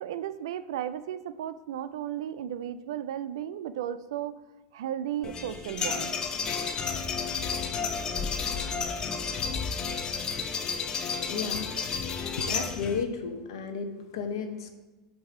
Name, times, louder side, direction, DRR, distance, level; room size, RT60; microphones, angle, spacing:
voice 1, 0.0-4.4 4.7-6.1, right 10 dB, 85° right, 13 dB, 0.3 m, -34 dB
sound 1, 5.2-13.0, left 5 dB, 30° left, 0.5 m, -31 dB
voice 2, 11.3-11.6 12.1-14.7, left 5 dB, 85° left, 7 dB, 0.7 m, -33 dB
7.9 x 2.7 x 4.8 m, 1.1 s
supercardioid pair, 125°, 3 cm